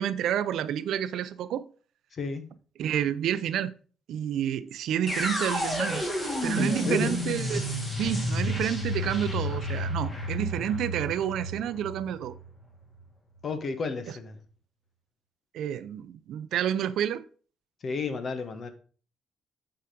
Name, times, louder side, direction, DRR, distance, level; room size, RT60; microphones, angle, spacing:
voice 1, 0.0-1.6 2.8-3.7 4.1-6.0 6.4-7.7 8.0-12.3 15.5-17.2, right 10 dB, 80° right, 0.6 m, -29 dB
voice 2, 2.1-2.4 6.6-7.1 13.4-14.4 17.8-18.7, left 4 dB, 50° left, 1.4 m, -32 dB
sound 1, 5.1-13.0, left 1 dB, 25° left, 3.0 m, -31 dB
8.5 x 5.0 x 5.2 m
cardioid pair, 90°, 0 cm